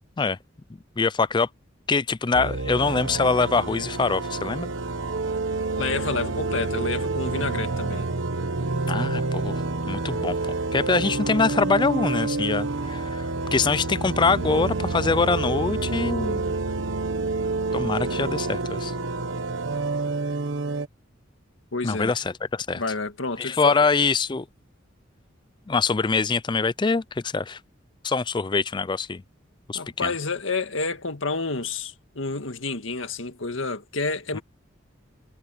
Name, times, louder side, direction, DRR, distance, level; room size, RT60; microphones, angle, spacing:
voice 1, 1.0-1.5 1.9-4.7 8.9-9.5 9.9-10.4 10.7-13.2 13.5-16.5 17.7-18.9 21.8-22.8 23.4-24.4 25.7-27.6 28.0-29.2 29.7-30.1 34.3-34.4, left 4 dB, 25° left, 0.4 m, -24 dB
sound 1, 2.3-20.9, right 3 dB, 75° right, 1.1 m, -28 dB
voice 2, 5.8-8.1 21.7-22.2 22.8-23.9 29.7-34.4, left 3 dB, 85° left, 1.9 m, -29 dB
head